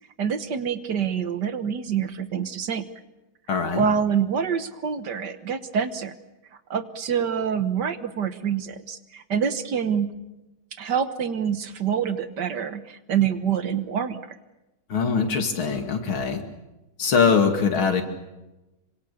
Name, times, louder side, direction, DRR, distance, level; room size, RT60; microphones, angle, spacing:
voice 1, 0.2-2.9 3.7-6.1 6.7-10.1 10.8-14.3, right 7 dB, 60° right, 11 dB, 1.7 m, -26 dB
voice 2, 3.5-3.8 14.9-16.4 17.0-18.0, left 5 dB, 80° left, 6 dB, 3.2 m, -22 dB
26.0 x 25.0 x 6.9 m, 1.0 s
omnidirectional pair, 2.2 m